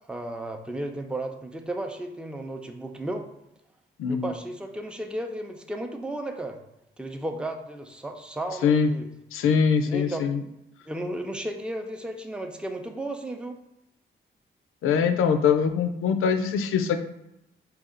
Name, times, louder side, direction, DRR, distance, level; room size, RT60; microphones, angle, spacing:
voice 1, 0.1-3.3 4.1-6.6 7.0-9.1 9.8-10.3 10.9-13.6, right 1 dB, 5° right, 4 dB, 0.5 m, -34 dB
voice 2, 4.0-4.3 8.6-8.9 9.3-10.4 14.8-17.0, left 6 dB, 85° left, 8 dB, 0.4 m, -23 dB
4.1 x 2.3 x 3.7 m, 0.85 s
cardioid pair, 55°, 21 cm